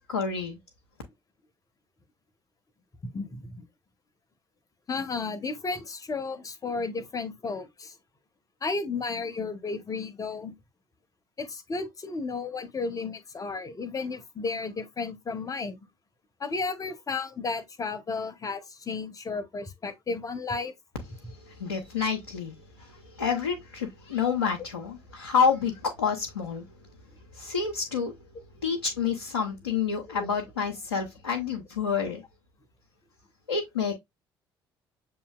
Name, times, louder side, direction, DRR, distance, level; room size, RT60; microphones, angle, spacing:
voice 1, 0.1-0.6 21.4-22.5 22.8-26.6 27.3-28.1 28.6-32.2 33.5-33.9, left 6 dB, 85° left, 0.6 m, -28 dB
voice 2, 3.1-3.6 4.9-7.9 8.6-10.5 11.4-15.8 16.4-20.7 30.1-30.3, left 4 dB, 30° left, 0.9 m, -33 dB
6.9 x 2.9 x 2.3 m
figure-of-eight pair, 55°, 13 cm